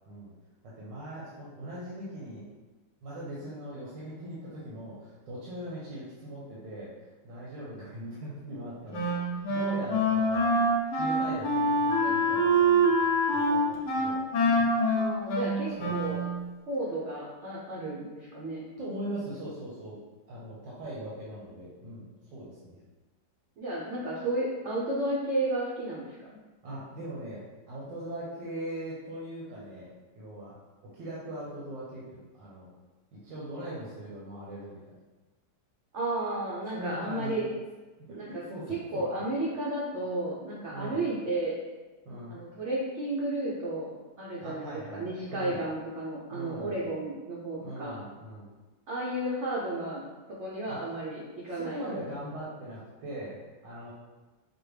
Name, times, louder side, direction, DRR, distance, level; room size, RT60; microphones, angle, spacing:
voice 1, 0.6-2.4 3.0-6.9 7.2-10.5 10.9-14.7 15.8-16.0 18.8-20.0 20.3-22.8 26.6-29.9 30.1-30.5 30.9-32.7 33.1-34.8 36.7-37.4 38.1-39.1 40.7-41.0 42.0-42.4 44.4-45.6 46.3-46.8 47.6-48.5 50.6-50.8 51.5-53.9, right 1 dB, 85° right, -7 dB, 1.5 m, -40 dB
Wind instrument woodwind instrument, 8.9-16.4, right 1 dB, 65° left, 1.2 m, -25 dB
voice 2, 14.9-16.2 16.7-18.6 23.6-26.2 35.9-37.4 38.2-38.4 38.7-41.6 42.3-48.0 48.9-50.0 50.3-51.8, right 1 dB, 65° right, -5 dB, 0.7 m, -33 dB
5.0 x 2.1 x 3.2 m, 1.2 s
omnidirectional pair, 1.9 m